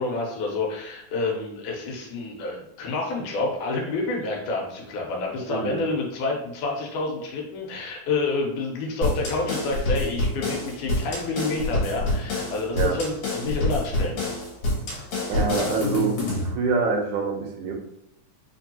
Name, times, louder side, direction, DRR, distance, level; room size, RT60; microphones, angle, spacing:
voice 1, 0.0-14.2, left 3 dB, 90° left, -1 dB, 2.4 m, -28 dB
voice 2, 5.5-5.9 12.7-13.0 15.3-16.2 16.4-17.7, right 4 dB, 75° right, 1 dB, 2.0 m, -25 dB
sound 1, 9.0-16.5, left 2 dB, 60° left, 2.3 m, -27 dB
5.1 x 2.6 x 2.7 m, 0.79 s
omnidirectional pair, 3.5 m